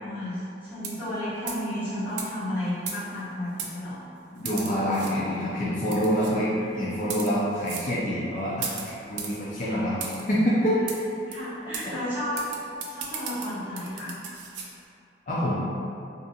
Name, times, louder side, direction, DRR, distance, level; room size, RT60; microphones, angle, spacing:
voice 1, 0.0-4.0 6.2-6.8 7.1-7.2 11.3-12.6 12.9-14.2, left 1 dB, 10° right, -15 dB, 1.0 m, -33 dB
sound 1, 0.8-1.1 1.5-1.7 2.2-2.3 2.9-3.2 3.6-3.7 4.5-5.1 5.9-6.3 7.0-7.3 7.7-7.9 8.6-9.4 10.0-10.2 10.9-11.0 11.3-11.4 11.7-11.9 12.4-14.7, right 6 dB, 70° right, 0.3 m, -36 dB
voice 2, 4.3-6.5 6.8-10.8 15.3-15.6, equal, 45° left, -8 dB, 0.3 m, -26 dB
2.4 x 2.2 x 2.7 m, 2.6 s
head